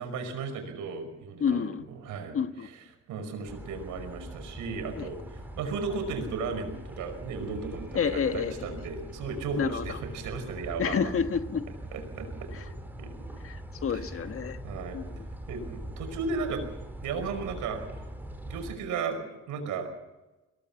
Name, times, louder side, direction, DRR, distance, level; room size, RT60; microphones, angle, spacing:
voice 1, 0.0-2.7 3.1-11.1 11.9-13.3 13.9-14.0 14.6-15.0 15.5-16.7 17.0-17.8 18.4-19.2 19.5-19.9, right 4 dB, 90° right, 6 dB, 5.4 m, -35 dB
voice 2, 1.4-1.8 2.3-2.7 4.9-5.1 7.9-8.7 9.6-10.0 10.8-11.6 12.5-12.6 13.4-14.6 14.9-15.3, left 6 dB, 45° left, 9 dB, 1.5 m, -29 dB
sound 1, 3.5-18.8, right 1 dB, 5° right, 4.4 m, -42 dB
22.5 x 18.0 x 7.2 m, 1.1 s
cardioid pair, 90°, 30 cm